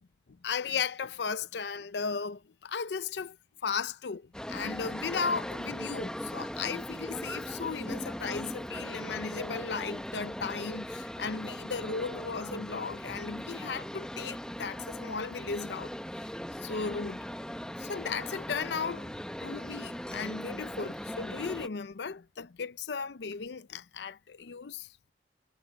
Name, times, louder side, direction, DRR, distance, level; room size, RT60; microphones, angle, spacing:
voice 1, 0.4-3.4 3.6-16.3 16.6-17.2 17.8-24.9, left 5 dB, 75° left, 0.5 m, -36 dB
sound 1, 4.3-21.7, equal, 5° left, 0.8 m, -39 dB
head